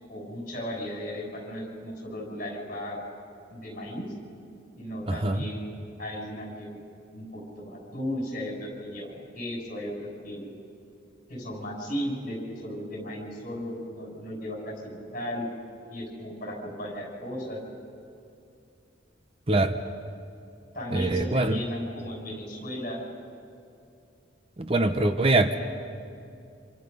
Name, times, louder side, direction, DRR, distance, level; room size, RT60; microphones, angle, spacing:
voice 1, 0.1-3.0 3.5-4.1 4.8-5.7 6.0-6.8 7.1-10.5 11.3-15.5 15.9-17.6 20.7-23.0, equal, 45° left, -1 dB, 6.0 m, -35 dB
voice 2, 5.1-5.4 19.5-19.7 20.9-21.6 24.6-25.6, right 2 dB, 30° right, 9 dB, 0.8 m, -23 dB
27.5 x 26.5 x 5.4 m, 2.5 s
head